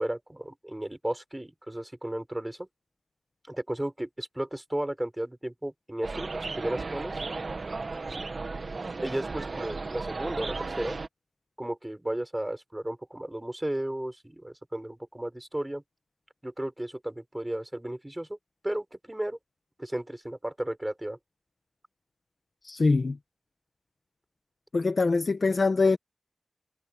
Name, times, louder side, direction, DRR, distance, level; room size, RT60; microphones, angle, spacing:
voice 1, 0.0-2.7 3.5-7.2 9.0-11.0 11.6-15.8 16.4-18.4 18.6-19.4 19.8-21.2, right 1 dB, 15° right, 5.8 m, -34 dB
sound 1, 6.0-11.1, right 3 dB, 65° right, 1.7 m, -35 dB
voice 2, 22.6-23.2 24.7-26.0, left 3 dB, 65° left, 1.6 m, -23 dB
wide cardioid pair, 60°, 0 cm